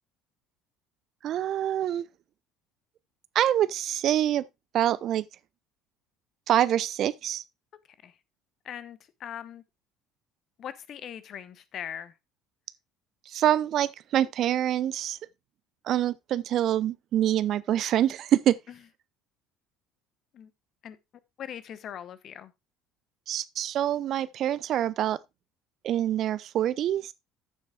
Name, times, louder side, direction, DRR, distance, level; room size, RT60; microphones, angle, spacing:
voice 1, 1.2-2.1 3.3-4.4 4.7-5.2 6.5-7.4 13.3-15.2 15.8-18.6 23.3-25.2 25.8-27.1, right 11 dB, 50° right, 0.5 m, -25 dB
voice 2, 8.6-9.6 10.6-12.1 20.3-20.5 20.8-21.0 21.4-22.5, left 9 dB, 45° left, 1.0 m, -40 dB
14.0 x 7.3 x 2.3 m
figure-of-eight pair, 60°, 0 cm